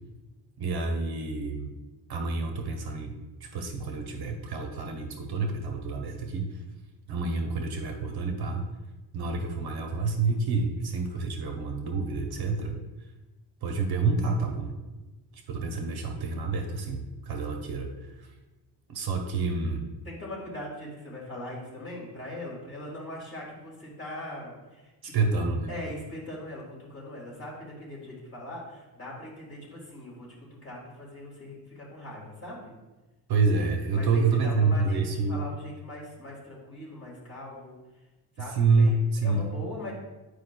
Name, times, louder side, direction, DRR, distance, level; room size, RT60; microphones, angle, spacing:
voice 1, 0.6-1.7 2.1-3.1 3.4-6.5 7.1-8.7 9.1-12.7 13.6-14.8 15.5-18.3 18.9-19.8 25.0-25.7 33.3-35.5 38.5-39.5, right 3 dB, 55° right, 3 dB, 0.9 m, -28 dB
voice 2, 20.0-32.8 33.9-37.8 38.4-39.9, left 1 dB, 30° left, -5 dB, 2.1 m, -41 dB
9.4 x 4.9 x 2.2 m, 1.1 s
cardioid pair, 155°, 46 cm